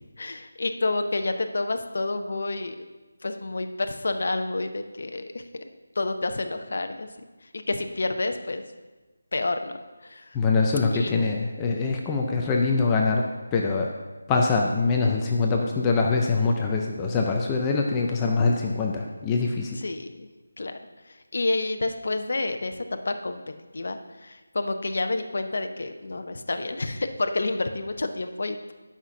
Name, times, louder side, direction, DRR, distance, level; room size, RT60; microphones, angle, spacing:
voice 1, 0.2-2.8 3.2-5.4 6.0-7.1 7.7-8.6 9.3-9.8 10.0-10.3 10.9-11.3 19.8-20.3 20.6-20.8 21.3-23.4 23.7-28.7, left 2 dB, 45° left, 7 dB, 0.7 m, -29 dB
voice 2, 10.3-13.3 13.5-13.9 14.3-19.8, left 4 dB, 10° left, 0 dB, 0.4 m, -23 dB
8.4 x 5.7 x 5.9 m, 1.2 s
figure-of-eight pair, 180°, 0 cm